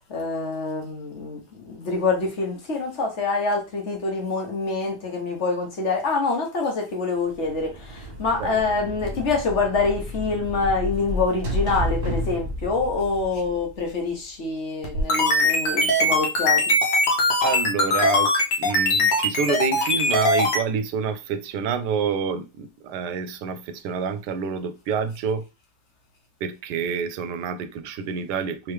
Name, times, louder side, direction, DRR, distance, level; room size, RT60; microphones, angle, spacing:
voice 1, 0.1-16.6, left 3 dB, 45° left, 1.3 m, -26 dB
sound 1, 7.3-14.1, left 1 dB, 35° right, 1.4 m, -31 dB
sound 2, 14.8-20.6, left 1 dB, 80° left, 1.5 m, -21 dB
voice 2, 17.4-25.4 26.4-28.7, right 6 dB, 80° right, 1.1 m, -28 dB
3.4 x 3.1 x 3.2 m
omnidirectional pair, 1.8 m